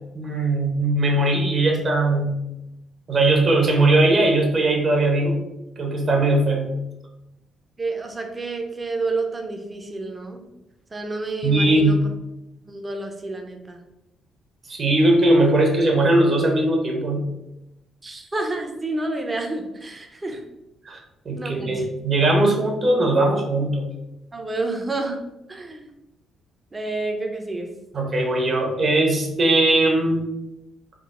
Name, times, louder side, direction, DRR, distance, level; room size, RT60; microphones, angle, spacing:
voice 1, 0.1-2.4 3.1-5.4 5.8-6.7 11.4-12.0 14.7-17.2 20.8-21.0 21.2-23.8 27.9-30.3, right 2 dB, 45° right, 1 dB, 1.0 m, -19 dB
voice 2, 7.8-10.4 10.9-12.0 12.6-13.8 18.0-20.4 21.4-21.9 24.3-25.2 25.5-25.9 26.7-27.7, right 2 dB, 25° right, 4 dB, 0.6 m, -29 dB
3.7 x 2.0 x 3.6 m, 0.90 s
cardioid pair, 90°, 0 cm